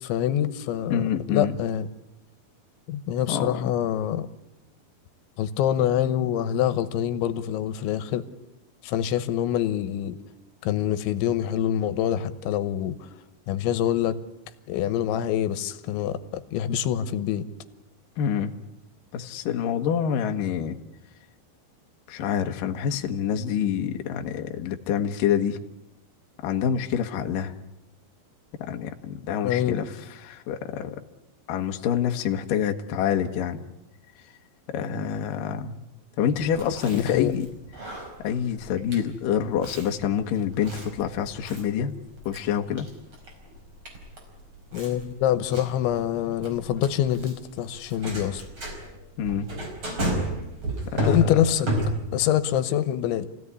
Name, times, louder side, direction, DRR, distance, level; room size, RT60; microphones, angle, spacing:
voice 1, 0.0-1.9 2.9-4.3 5.4-8.3 8.8-10.2 10.6-13.0 13.5-14.2 14.7-17.4 29.4-29.8 36.9-37.3 44.7-48.4 51.0-51.7 52.1-53.3, left 10 dB, 85° left, 13 dB, 3.4 m, -25 dB
voice 2, 0.9-1.6 3.3-3.6 18.2-18.5 19.1-20.8 22.1-25.6 26.4-27.5 28.6-29.9 30.2-31.0 31.5-33.6 34.7-35.8 36.2-37.5 38.2-41.9 42.3-42.9 49.2-49.5 50.8-51.3, left 8 dB, 65° left, 5 dB, 2.5 m, -27 dB
Chewing mastication, 36.4-52.3, right 1 dB, 30° right, 5.2 m, -33 dB
27.0 x 17.0 x 9.8 m, 0.89 s
omnidirectional pair, 5.3 m